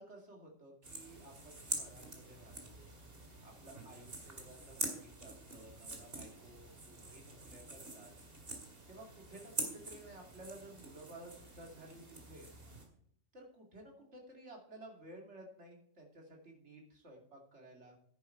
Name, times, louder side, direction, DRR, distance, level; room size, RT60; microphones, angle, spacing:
voice 1, 0.0-2.9 3.4-8.1 8.9-12.5 13.3-17.9, right 1 dB, 70° right, 1 dB, 2.9 m, -54 dB
sound 1, 0.8-12.9, right 2 dB, 55° right, 2.5 m, -46 dB
10.5 x 9.7 x 4.5 m, 0.65 s
omnidirectional pair, 1.2 m